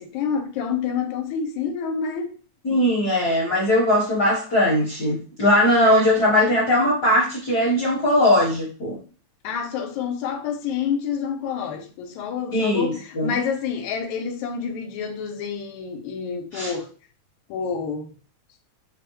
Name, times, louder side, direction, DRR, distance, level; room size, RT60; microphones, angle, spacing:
voice 1, 0.0-2.3 9.4-16.9 17.5-18.1, left 6 dB, 85° left, 2.0 m, -28 dB
voice 2, 2.6-9.0 12.5-13.3 16.5-16.7, left 1 dB, 60° left, 1.0 m, -20 dB
5.8 x 2.0 x 3.0 m
omnidirectional pair, 3.3 m